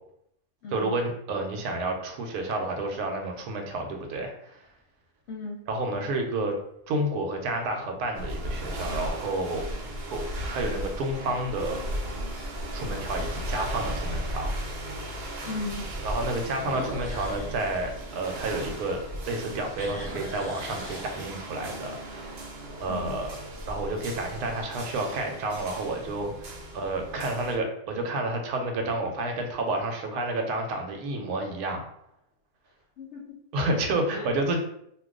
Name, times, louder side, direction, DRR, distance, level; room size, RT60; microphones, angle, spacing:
voice 1, 0.7-4.7 5.7-6.5 6.9-9.7 10.0-10.2 10.5-11.8 12.7-14.6 16.0-22.4 22.8-23.3 23.7-31.9 33.5-34.6, right 2 dB, 85° right, 3 dB, 1.1 m, -30 dB
sound 1, 3.2-3.5 4.2-4.3 9.5-10.0 10.4-10.5 11.1-11.2 11.5-11.6 13.1-13.2 16.5-19.0 19.4-21.7, equal, 10° right, 0.9 m, -41 dB
voice 2, 5.3-5.6 15.4-15.8 22.9-23.1 33.0-33.7 34.1-34.3, left 3 dB, 60° left, -1 dB, 0.8 m, -37 dB
sound 2, 8.1-27.6, right 1 dB, 55° right, 0.7 m, -36 dB
2.5 x 2.3 x 3.6 m, 0.73 s
omnidirectional pair, 1.6 m